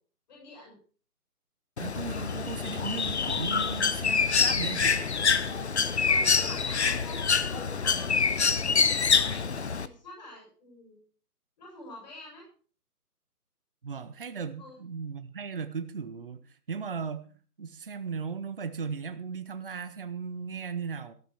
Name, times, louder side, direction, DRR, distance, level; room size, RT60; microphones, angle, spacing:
voice 1, 0.3-0.8 3.5-3.8 5.4-11.0 11.6-12.5 14.6-14.8, left 2 dB, 30° left, -3 dB, 7.7 m, -48 dB
Bird, 1.8-9.9, left 5 dB, 45° left, 0.8 m, -26 dB
voice 2, 1.8-5.0 13.8-16.4 16.7-21.1, right 5 dB, 35° right, 9 dB, 0.9 m, -37 dB
14.0 x 13.0 x 4.6 m, 0.40 s
hypercardioid pair, 170°, 46 cm